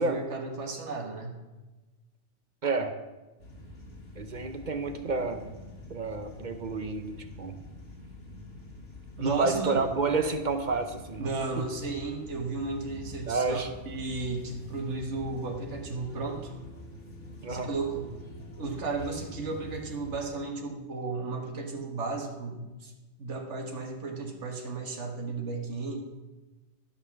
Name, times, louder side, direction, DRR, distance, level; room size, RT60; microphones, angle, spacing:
voice 1, 0.0-1.4 9.2-9.9 11.2-16.5 17.5-18.1 18.6-22.9 23.2-26.0, right 3 dB, 75° right, 2 dB, 1.8 m, -34 dB
voice 2, 2.6-2.9 4.2-5.5 5.9-7.6 9.2-11.6 13.3-13.7 17.4-17.7, right 3 dB, 45° right, 8 dB, 0.8 m, -30 dB
sound 1, 3.4-20.2, left 1 dB, 85° left, 2.1 m, -46 dB
12.0 x 5.6 x 7.0 m, 1.2 s
omnidirectional pair, 1.2 m